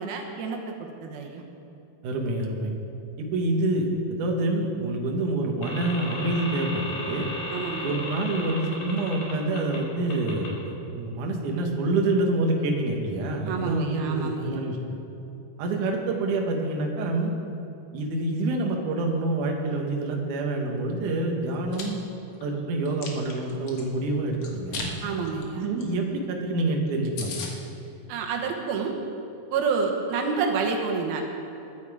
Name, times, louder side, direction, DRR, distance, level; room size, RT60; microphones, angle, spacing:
voice 1, 0.0-1.4 7.5-7.9 13.5-14.7 25.0-25.7 28.1-29.0 29.5-31.2, right 5 dB, 85° right, 2 dB, 3.1 m, -29 dB
voice 2, 2.0-2.7 3.2-7.3 7.8-14.8 15.6-17.3 17.9-22.0 22.4-24.9 25.6-27.4, right 2 dB, 65° right, 1 dB, 2.6 m, -27 dB
sound 1, 5.6-9.8 10.1-10.5, left 2 dB, 90° left, 4.6 m, -35 dB
Chewing mastication, 21.5-21.8 22.3-23.8 24.4-24.9 25.2-25.4 25.8-25.9 26.1-26.2 26.6-26.7 26.9-27.0 27.2-27.5, left 5 dB, 55° left, 2.1 m, -36 dB
21.0 x 8.8 x 4.9 m, 2.7 s
omnidirectional pair, 4.2 m